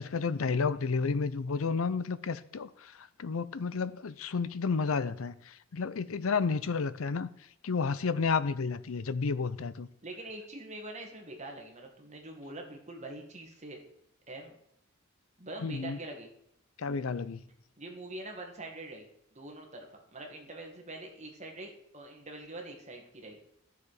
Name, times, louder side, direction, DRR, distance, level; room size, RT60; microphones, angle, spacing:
voice 1, 0.0-7.3 7.6-9.9 15.6-16.0 16.8-17.4, left 5 dB, 80° left, 0.5 m, -31 dB
voice 2, 10.0-13.8 14.3-14.6 15.4-16.3 17.8-19.1 19.3-23.4, right 2 dB, 35° right, 1.9 m, -44 dB
13.0 x 7.0 x 4.9 m
head